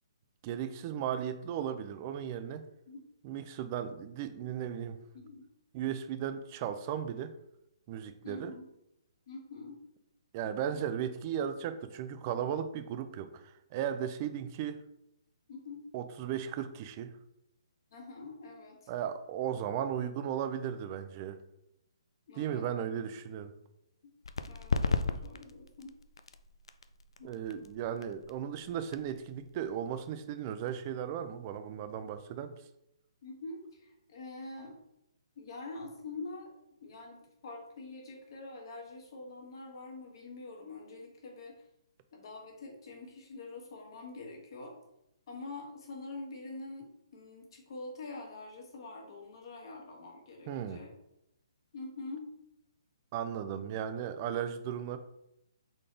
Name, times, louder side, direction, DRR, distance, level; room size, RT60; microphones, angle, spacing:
voice 1, 0.4-2.7 3.2-5.0 5.7-7.3 7.9-8.5 10.3-14.8 15.9-17.2 18.9-21.4 22.3-23.5 27.2-32.5 50.5-50.8 53.1-55.0, right 9 dB, 30° right, 10 dB, 0.4 m, -36 dB
voice 2, 5.1-5.5 8.2-8.7 9.3-9.8 15.5-15.8 17.9-18.8 22.3-22.7 24.0-24.1 24.5-25.9 27.2-27.7 33.2-34.8 35.4-36.5 36.8-41.6 42.1-44.7 45.3-50.9 51.7-52.3, left 3 dB, 55° left, -1 dB, 1.4 m, -45 dB
sound 1, 24.2-31.6, left 4 dB, 75° left, 0.3 m, -37 dB
3.9 x 3.7 x 3.3 m, 0.84 s
hypercardioid pair, 145°, 3 cm